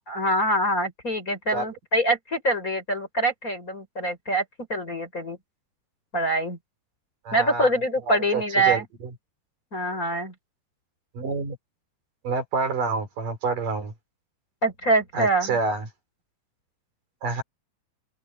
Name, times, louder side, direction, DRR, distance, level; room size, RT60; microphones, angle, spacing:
voice 1, 0.1-4.4 4.7-5.4 6.1-6.6 7.3-8.8 9.7-10.3 14.6-15.6, right 1 dB, 20° left, 4.8 m, -24 dB
voice 2, 7.3-7.7 8.1-8.8 11.1-11.6 12.2-13.9 15.1-15.9 17.2-17.4, right 4 dB, 65° right, 5.3 m, -28 dB
omnidirectional pair, 4.2 m